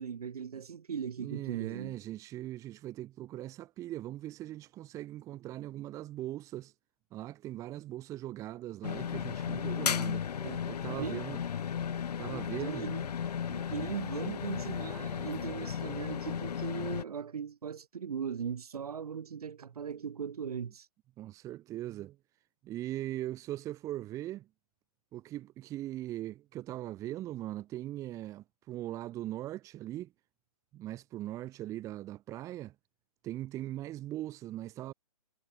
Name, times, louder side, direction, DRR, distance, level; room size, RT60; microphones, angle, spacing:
voice 1, 0.0-2.0 10.4-10.6 10.9-11.2 12.3-13.1 13.5-20.9, right 7 dB, 70° right, 3.4 m, -39 dB
voice 2, 1.2-6.7 7.1-10.2 10.7-11.4 12.2-12.9 21.2-22.2 22.6-24.5 25.1-30.1 30.7-32.7 33.2-34.9, right 14 dB, 15° right, 1.4 m, -40 dB
sound 1, 8.8-17.0, left 8 dB, 85° left, 0.6 m, -35 dB
hypercardioid pair, 155°, 20 cm